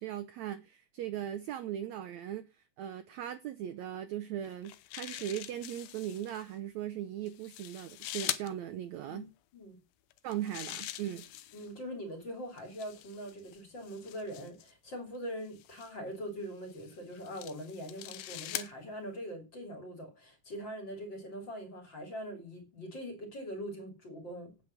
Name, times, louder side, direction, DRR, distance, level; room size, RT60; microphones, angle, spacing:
voice 1, 0.0-2.5 2.8-9.3 10.2-11.3, right 11 dB, 80° right, 1.6 m, -38 dB
sound 1, 4.4-6.4 7.3-8.5 10.1-11.7 12.6-14.7 15.6-15.9 16.7-18.7, left 14 dB, 85° left, 2.6 m, -42 dB
voice 2, 11.5-24.5, equal, 35° left, 3.1 m, -42 dB
9.3 x 7.1 x 6.5 m
omnidirectional pair, 4.1 m